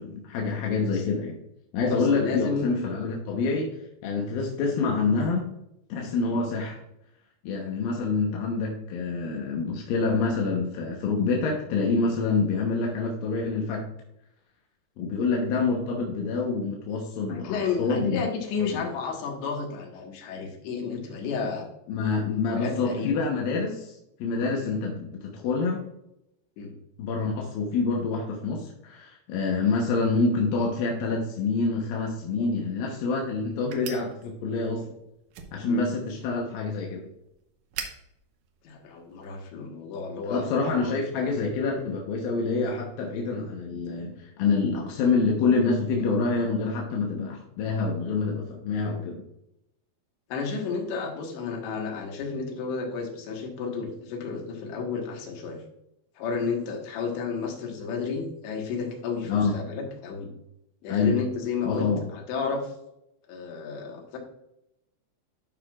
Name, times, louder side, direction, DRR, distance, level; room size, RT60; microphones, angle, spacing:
voice 1, 0.0-1.4 1.7-3.8 4.0-5.5 5.9-6.8 7.4-13.8 15.0-18.2 18.6-18.8 21.9-25.8 27.0-34.9 35.5-37.1 40.2-49.2 59.2-59.5 60.9-61.1 61.6-62.0, left 4 dB, 70° left, -1 dB, 2.5 m, -27 dB
voice 2, 1.9-2.7 6.3-6.4 8.0-8.1 17.3-21.7 22.5-23.2 24.6-24.7 26.6-26.7 32.4-32.5 35.7-35.8 38.7-41.0 41.4-41.5 50.3-55.6 56.2-60.3 60.8-62.7 63.3-64.2, left 5 dB, 90° left, 1 dB, 3.8 m, -32 dB
sound 1, 32.3-39.5, right 7 dB, 75° right, 2.0 m, -45 dB
11.5 x 5.9 x 2.4 m, 0.81 s
omnidirectional pair, 4.9 m